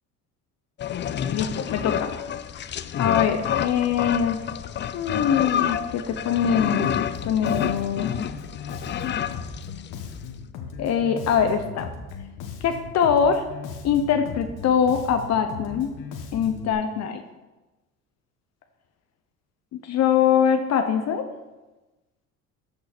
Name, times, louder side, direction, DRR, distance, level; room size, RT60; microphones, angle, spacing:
sound 1, 0.8-10.2, left 9 dB, 35° left, 0.5 m, -29 dB
voice 1, 1.3-2.1 2.6-2.7 3.0-4.4 4.9-6.9 7.2-8.1 10.8-11.9 12.6-13.5 13.8-15.9 16.3-17.2 19.7-21.3, left 7 dB, 60° left, 6 dB, 0.9 m, -23 dB
Bass guitar, 6.8-16.7, left 5 dB, 80° left, 1.6 m, -38 dB
14.0 x 5.4 x 4.3 m, 1.1 s
cardioid pair, 100°, 30 cm